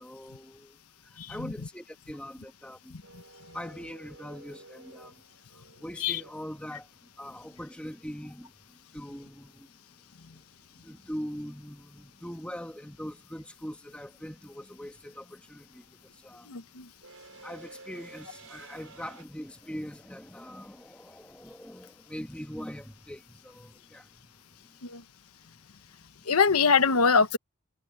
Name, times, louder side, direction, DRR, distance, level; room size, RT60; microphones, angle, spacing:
voice 1, 0.0-3.0 3.5-5.2 5.5-6.9 7.2-9.7 10.8-16.6 17.4-24.3 24.6-24.7, equal, 5° left, 1.6 m, -42 dB
voice 2, 1.2-1.5 2.9-3.2 6.0-6.2 16.5-16.9 24.8-25.0 26.2-27.4, left 5 dB, 85° left, 1.1 m, -24 dB
sound 1, 3.0-7.1 9.5-9.6 10.9-11.2 11.5-19.2, right 3 dB, 70° right, 6.1 m, -52 dB
head